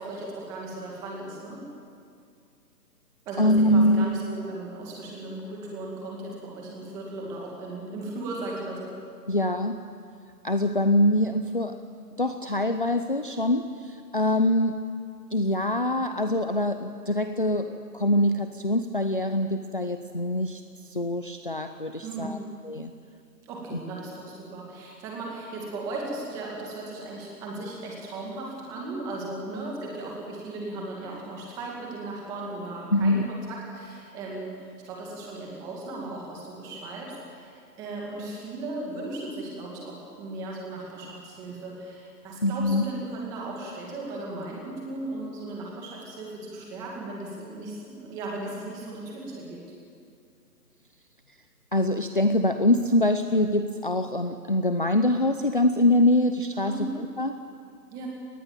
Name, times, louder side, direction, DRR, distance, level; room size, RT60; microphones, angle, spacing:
voice 1, 0.0-1.6 3.3-8.9 22.0-22.4 23.4-49.6 56.6-56.9 57.9-58.1, right 2 dB, 5° right, -2 dB, 2.2 m, -37 dB
voice 2, 3.4-4.1 9.3-9.7 10.4-11.8 12.2-14.8 15.3-22.4 22.6-22.9 23.7-23.8 32.9-33.2 42.4-42.8 51.7-57.3, left 1 dB, 30° left, 7 dB, 0.6 m, -24 dB
25.5 x 19.5 x 9.1 m, 2.3 s
hypercardioid pair, 170°, 50 cm